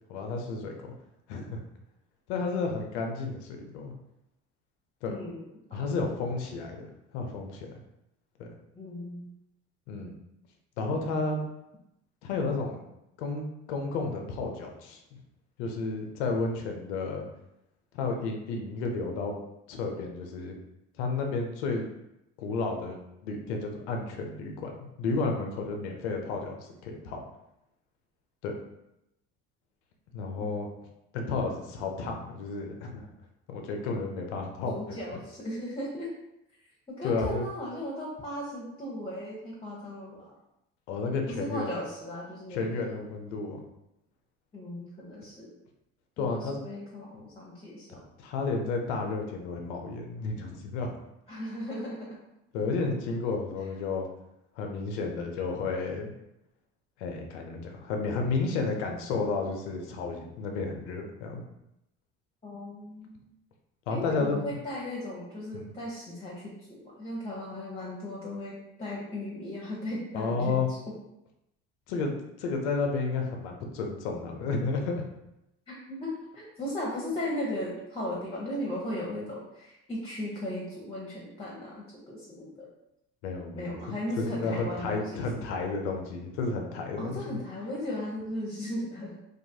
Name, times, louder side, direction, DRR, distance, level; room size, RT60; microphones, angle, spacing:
voice 1, 0.1-0.7 1.3-1.6 2.3-3.9 5.0-5.2 5.7-6.9 7.1-7.7 8.4-8.5 9.9-10.1 10.8-11.4 12.2-12.8 13.2-15.0 15.6-17.2 17.9-19.3 19.7-20.6 21.0-21.9 22.4-24.7 25.0-27.2 28.4-28.5 30.1-30.7 31.1-33.1 33.5-35.0 37.0-37.5 40.9-41.7 42.5-43.6 46.2-46.6 48.2-50.9 52.5-54.1 54.6-56.1 57.0-61.4 63.9-64.5 65.5-65.7 70.1-70.7 71.9-72.1 72.4-75.1 83.2-83.7 84.2-87.4, left 3 dB, 90° left, 2 dB, 0.5 m, -32 dB
voice 2, 5.1-5.8 8.7-9.3 30.4-30.6 34.7-36.1 36.9-40.3 41.3-42.9 44.5-45.5 46.2-48.0 51.3-52.2 62.4-63.2 63.9-70.8 75.7-82.7 83.5-85.3 87.0-89.1, left 1 dB, 15° left, -4 dB, 0.8 m, -36 dB
2.6 x 2.3 x 2.6 m, 0.85 s
hypercardioid pair, 65°, 33 cm